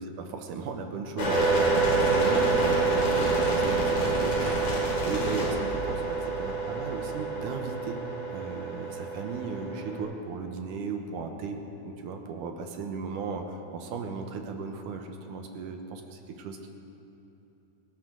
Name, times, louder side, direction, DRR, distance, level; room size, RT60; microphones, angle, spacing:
voice 1, 0.0-8.0 8.3-16.7, right 4 dB, 75° right, 4 dB, 2.6 m, -36 dB
sound 1, 1.2-10.0, right 3 dB, 55° left, 4.7 m, -27 dB
25.5 x 12.5 x 3.9 m, 3.0 s
omnidirectional pair, 3.7 m